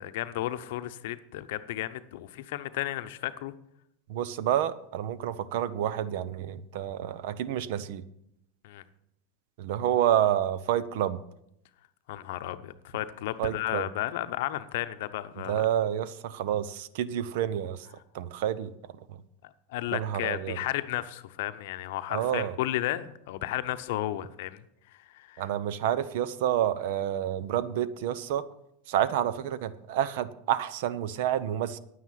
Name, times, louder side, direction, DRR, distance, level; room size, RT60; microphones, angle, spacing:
voice 1, 0.0-3.5 8.6-8.8 12.1-15.7 19.7-24.6 25.1-25.4, left 14 dB, 70° left, 0.7 m, -33 dB
voice 2, 4.1-8.0 9.6-11.2 13.4-13.9 15.4-17.9 18.1-18.7 19.1-19.2 19.9-20.6 22.1-22.5 25.4-28.4 28.9-31.8, right 10 dB, 70° right, 0.7 m, -29 dB
9.4 x 9.3 x 5.8 m
hypercardioid pair, 105°, 0 cm